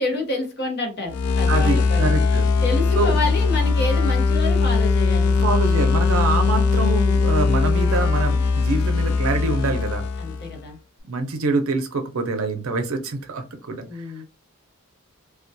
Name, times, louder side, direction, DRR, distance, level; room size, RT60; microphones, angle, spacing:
voice 1, 0.0-2.1 2.6-5.3 10.2-10.8 13.9-14.2, left 2 dB, 50° left, 2 dB, 0.8 m, -28 dB
sound 1, 1.1-10.6, left 4 dB, 85° left, 0.3 m, -20 dB
voice 2, 1.5-2.5 3.0-3.2 5.3-10.1 11.0-14.2, right 3 dB, 70° right, 6 dB, 0.5 m, -25 dB
2.2 x 2.2 x 2.6 m, 0.32 s
head